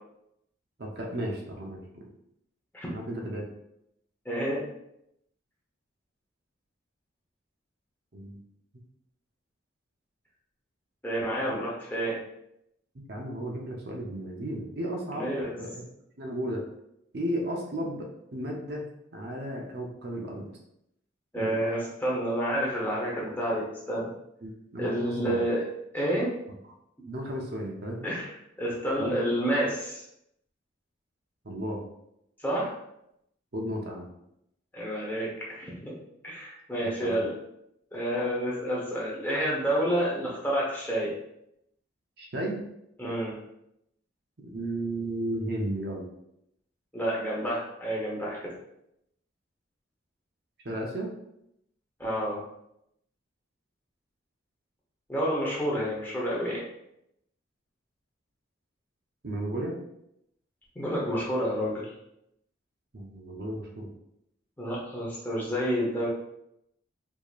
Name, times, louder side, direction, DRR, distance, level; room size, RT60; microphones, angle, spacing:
voice 1, 0.8-2.0 2.9-3.4 8.1-8.4 13.1-15.3 15.6-15.8 16.2-16.6 17.1-18.8 19.1-20.5 21.3-21.6 24.4-25.4 27.1-28.1 29.0-29.2 31.4-31.8 33.5-34.1 37.0-37.2 42.2-42.6 44.5-46.0 50.6-51.1 59.2-59.7 62.9-63.9, right 1 dB, 50° right, -1 dB, 0.6 m, -34 dB
voice 2, 4.2-4.7 11.0-12.2 15.1-15.5 21.3-24.1 24.8-25.6 25.9-26.3 28.0-28.3 28.6-30.0 32.4-32.8 34.7-35.9 36.2-37.3 37.9-41.1 43.0-43.3 46.9-48.5 52.0-52.4 55.1-56.6 60.7-61.9 64.6-66.1, equal, 10° left, -5 dB, 0.9 m, -29 dB
4.7 x 2.8 x 2.4 m, 0.79 s
head